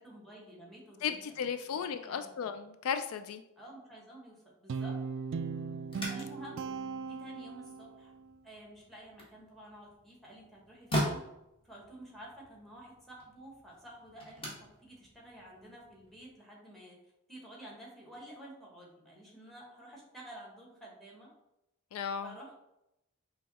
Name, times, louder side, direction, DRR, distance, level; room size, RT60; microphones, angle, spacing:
voice 1, 0.0-1.2 2.0-2.5 3.6-5.0 6.1-6.6 7.0-8.1 8.4-11.2 11.6-17.0 17.3-21.3 22.2-22.5, right 1 dB, ahead, -3 dB, 1.2 m, -51 dB
voice 2, 1.0-3.4 21.9-22.3, left 7 dB, 70° left, 9 dB, 0.3 m, -35 dB
Guitar, 4.7-8.0, right 5 dB, 55° right, 0.3 m, -38 dB
sound 1, 5.8-16.3, equal, 25° left, 1.4 m, -42 dB
5.5 x 2.3 x 4.0 m, 0.86 s
head